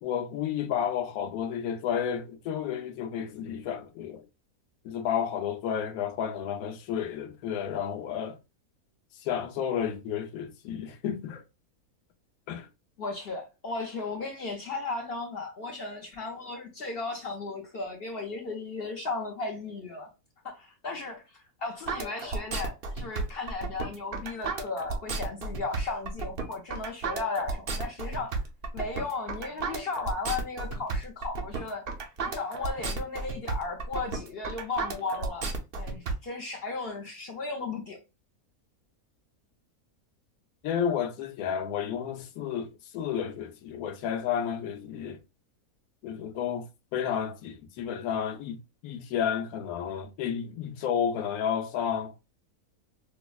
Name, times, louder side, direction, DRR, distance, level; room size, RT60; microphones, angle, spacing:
voice 1, 0.0-4.3 4.8-8.4 9.1-11.4 12.5-12.7 40.6-45.2 46.0-52.1, left 8 dB, 75° left, 1.1 m, -31 dB
voice 2, 13.0-20.1 20.4-21.2 21.6-28.4 28.7-31.8 32.2-35.5 35.8-38.0, left 3 dB, 55° left, 0.7 m, -35 dB
sound 1, 21.9-36.1, right 3 dB, 50° right, 0.7 m, -33 dB
5.0 x 2.0 x 2.3 m
omnidirectional pair, 1.6 m